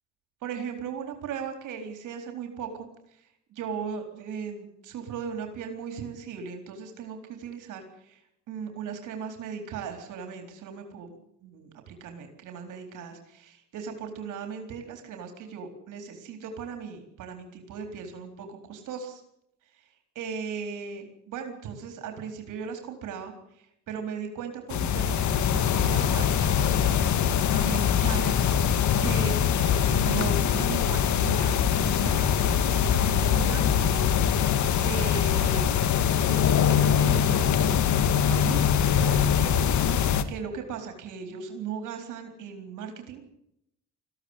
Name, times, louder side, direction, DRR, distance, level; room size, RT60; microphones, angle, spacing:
voice 1, 0.4-2.9 3.2-8.2 8.5-11.1 11.4-19.2 19.8-19.9 20.2-26.6 27.5-28.4 29.0-34.0 34.8-35.7 36.3-37.9 38.2-39.6 40.3-43.2, right 6 dB, 85° right, 5 dB, 4.1 m, -37 dB
sound 1, 24.7-40.2, left 8 dB, 70° left, 1.9 m, -23 dB
20.5 x 15.5 x 9.8 m, 0.78 s
cardioid pair, 90°, 30 cm